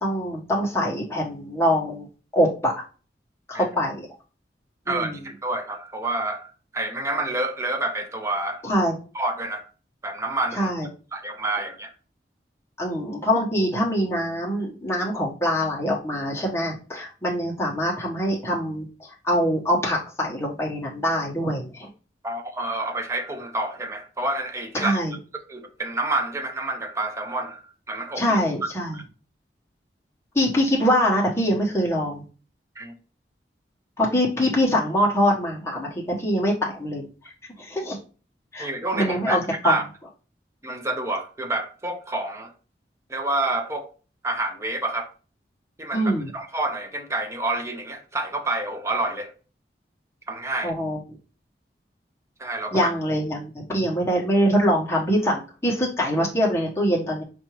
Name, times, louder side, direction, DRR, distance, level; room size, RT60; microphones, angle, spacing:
voice 1, 0.0-2.1 2.3-2.7 3.5-4.1 4.9-5.2 8.6-9.0 10.6-10.9 12.8-21.9 24.8-25.1 28.2-29.0 30.3-32.2 34.0-37.1 37.6-38.0 38.5-38.7 38.9-39.7 45.9-46.3 50.6-51.0 52.7-57.2, equal, 15° left, 0.9 m, -24 dB
voice 2, 4.9-8.6 9.1-9.6 10.0-10.7 11.1-11.9 22.2-25.0 25.5-27.6 27.9-28.2 28.9-29.0 32.8-32.9 38.6-39.4 39.6-39.8 40.6-42.5 43.1-43.9 44.2-45.1 45.8-49.3 50.3-50.7 52.4-52.9, right 2 dB, 15° right, 0.5 m, -28 dB
4.7 x 2.6 x 2.9 m
head